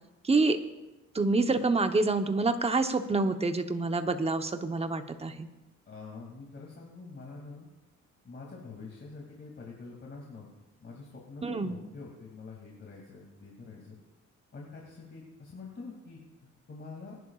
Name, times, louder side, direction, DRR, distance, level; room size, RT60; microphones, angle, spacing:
voice 1, 0.2-0.6 1.1-5.5 11.4-11.8, right 3 dB, 20° right, 8 dB, 0.9 m, -27 dB
voice 2, 5.9-7.7 8.2-10.5 10.8-14.0 14.5-16.2 16.7-17.2, left 4 dB, 40° left, -3 dB, 2.6 m, -46 dB
22.5 x 11.0 x 2.4 m, 1.0 s
cardioid pair, 90°, 30 cm